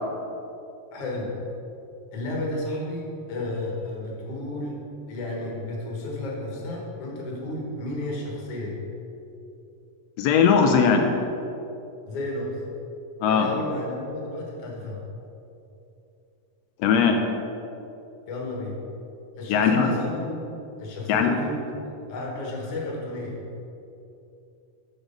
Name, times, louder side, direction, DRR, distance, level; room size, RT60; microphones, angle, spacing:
voice 1, 0.9-1.3 2.1-4.8 5.1-8.8 12.1-12.5 13.3-15.0 18.3-18.8 19.4-20.5 20.8-21.8 22.1-23.4, left 1 dB, 55° left, -2 dB, 2.1 m, -32 dB
voice 2, 10.2-11.1 13.2-13.5 16.8-17.2 19.5-19.9 21.1-21.3, left 6 dB, 80° left, 4 dB, 1.6 m, -19 dB
6.3 x 6.2 x 5.1 m, 2.8 s
omnidirectional pair, 3.4 m